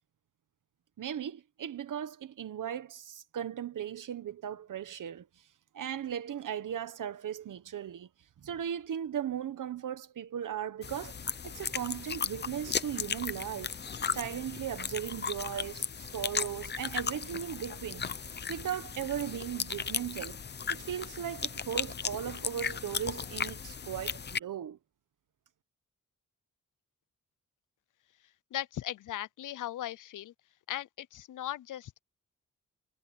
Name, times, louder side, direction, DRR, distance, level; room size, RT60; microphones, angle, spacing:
voice 1, 1.0-5.3 5.7-8.1 8.4-11.1 11.4-13.7 14.1-18.0 18.5-20.4 20.7-24.8, right 9 dB, 80° right, 1.2 m, -37 dB
sound 1, 10.8-24.4, left 6 dB, 35° left, 0.7 m, -36 dB
voice 2, 28.5-30.3 30.7-32.0, left 12 dB, 75° left, 0.5 m, -38 dB
wide cardioid pair, 175°, 31 cm